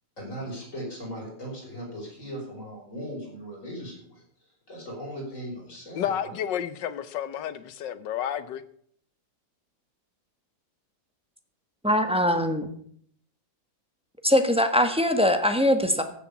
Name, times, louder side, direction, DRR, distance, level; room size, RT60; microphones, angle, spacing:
voice 1, 0.2-4.2 4.7-6.3, equal, 40° left, 6.1 m, -38 dB
voice 2, 5.9-8.6, left 9 dB, 70° left, 1.5 m, -31 dB
voice 3, 11.8-12.7 14.2-16.0, left 1 dB, 5° right, 1.1 m, -22 dB
15.0 x 7.2 x 7.0 m
omnidirectional pair, 2.1 m